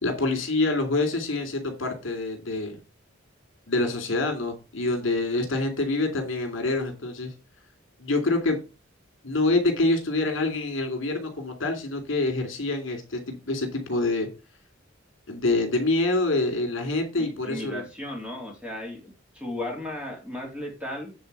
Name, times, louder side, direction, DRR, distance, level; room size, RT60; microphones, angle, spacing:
voice 1, 0.0-2.8 3.7-7.3 8.0-8.6 9.2-14.3 15.3-17.8, left 2 dB, 70° left, 4 dB, 3.0 m, -26 dB
voice 2, 17.2-21.1, left 1 dB, 5° right, 0 dB, 2.9 m, -35 dB
9.3 x 4.2 x 6.7 m, 0.30 s
head